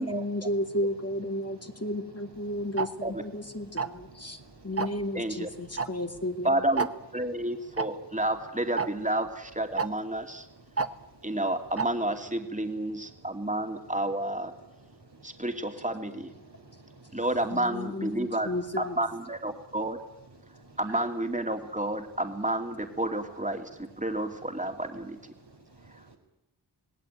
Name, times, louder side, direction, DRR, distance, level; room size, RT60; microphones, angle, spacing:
voice 1, 0.0-6.6 17.5-19.0, left 1 dB, 35° left, 5 dB, 2.4 m, -33 dB
voice 2, 2.4-2.8 3.6-4.8 5.6-6.0 7.2-8.2 10.3-11.4 12.7-13.3 13.7-13.8 14.7-15.9 16.3-17.2 18.2-18.3 20.4-21.0 24.3-24.4 25.0-25.1 25.4-26.2, right 2 dB, 85° right, 2 dB, 4.9 m, -54 dB
Tick-tock, 2.8-2.9 3.8-4.1 4.8-5.0 5.8-5.9 6.2-6.3 6.8-6.9 7.8-7.9 8.8-8.9 9.8-9.9 10.8-10.9 11.8-11.9, right 4 dB, 35° right, 1.1 m, -27 dB
voice 3, 5.1-5.5 6.4-6.9 7.1-10.5 11.2-14.5 15.2-16.3 17.1-18.5 18.8-20.0 20.8-25.2, right 1 dB, 20° right, 5 dB, 2.8 m, -30 dB
27.0 x 19.0 x 9.1 m, 0.87 s
wide cardioid pair, 45°, 41 cm